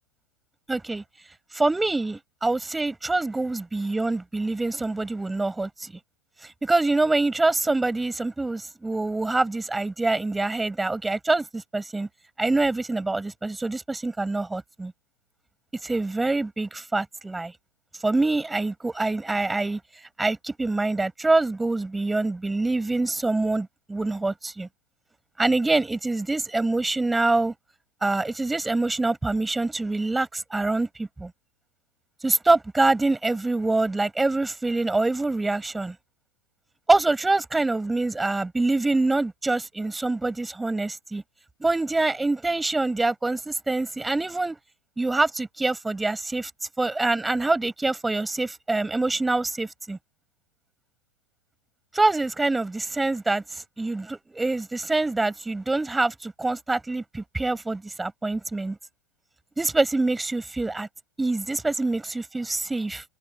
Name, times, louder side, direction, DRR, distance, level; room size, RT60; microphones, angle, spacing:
voice 1, 0.7-1.0 1.5-5.9 6.4-12.1 12.4-14.9 15.8-17.5 18.0-19.8 20.2-24.7 25.4-27.5 28.0-31.3 32.2-35.9 36.9-41.2 41.6-44.6 45.0-46.5 46.8-50.0 51.9-58.8 59.6-60.9 61.2-63.0, right 2 dB, 10° right, 7.3 m, -25 dB
figure-of-eight pair, 95°, 0 cm